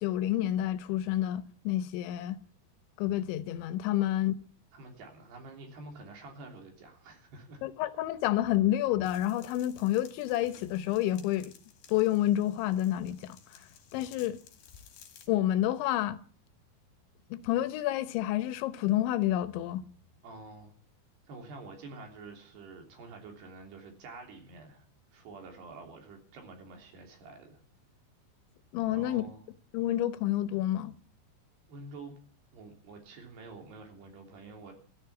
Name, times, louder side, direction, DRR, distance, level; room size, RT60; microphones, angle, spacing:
voice 1, 0.0-2.4 3.0-4.3 7.6-11.5 11.9-13.4 13.9-14.4 15.3-16.2 17.3-19.8 28.7-29.2 29.7-30.9, left 13 dB, 85° left, 3.3 m, -29 dB
voice 2, 4.7-7.6 20.2-20.7 21.3-24.9 25.1-27.6 28.9-29.4 31.7-32.2 32.5-34.7, right 3 dB, 65° right, 5.2 m, -48 dB
sound 1, 9.0-15.3, left 8 dB, 65° left, 3.8 m, -56 dB
13.5 x 10.5 x 9.4 m
omnidirectional pair, 5.2 m